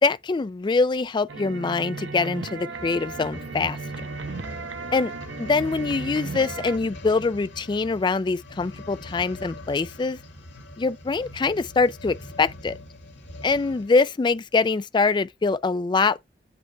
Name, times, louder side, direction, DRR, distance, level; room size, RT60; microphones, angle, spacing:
voice 1, 0.0-4.1 4.9-5.1 5.4-10.2 10.8-12.8 13.4-16.2, left 4 dB, 25° left, 0.3 m, -24 dB
sound 1, 1.3-6.8, right 4 dB, 90° right, 0.8 m, -35 dB
sound 2, 2.6-14.0 14.6-14.7, left 1 dB, 80° left, 1.9 m, -42 dB
8.7 x 4.0 x 3.3 m
head